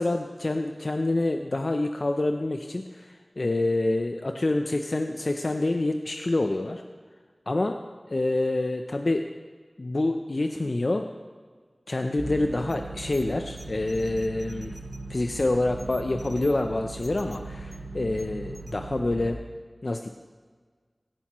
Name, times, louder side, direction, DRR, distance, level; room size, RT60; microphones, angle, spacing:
voice 1, 0.0-6.8 7.5-7.8 8.1-9.3 9.8-11.1 11.9-14.8 15.1-19.4 19.8-20.1, left 2 dB, 60° left, 5 dB, 0.5 m, -27 dB
sound 1, 12.2-19.3, right 2 dB, 10° right, 1.0 m, -39 dB
16.5 x 10.5 x 3.0 m, 1.6 s
wide cardioid pair, 55°, 0 cm